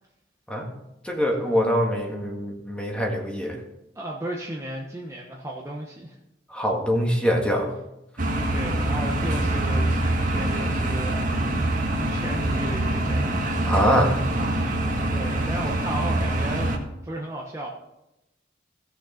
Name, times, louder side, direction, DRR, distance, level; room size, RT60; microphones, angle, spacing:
voice 1, 1.0-3.6 6.5-7.7 13.7-14.2, equal, 5° left, 1 dB, 1.7 m, -23 dB
voice 2, 3.9-6.2 8.5-13.6 15.1-16.7 17.0-17.7, right 1 dB, 15° right, -2 dB, 1.1 m, -34 dB
sound 1, 8.2-16.8, right 1 dB, 45° right, 1.6 m, -25 dB
16.5 x 6.5 x 4.3 m, 0.89 s
head